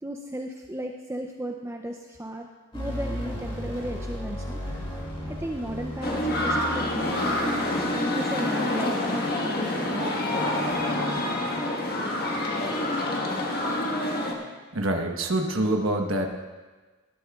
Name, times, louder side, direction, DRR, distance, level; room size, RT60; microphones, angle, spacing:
voice 1, 0.0-2.5 2.7-4.6 5.3-10.1, right 1 dB, 10° right, 2 dB, 0.5 m, -35 dB
sound 1, 2.7-8.0, equal, 25° left, 2.5 m, -35 dB
sound 2, 6.0-14.3, left 1 dB, 45° left, 1.5 m, -27 dB
voice 2, 14.7-16.3, right 1 dB, 75° right, 3 dB, 1.2 m, -25 dB
18.5 x 12.0 x 2.4 m, 1.3 s
head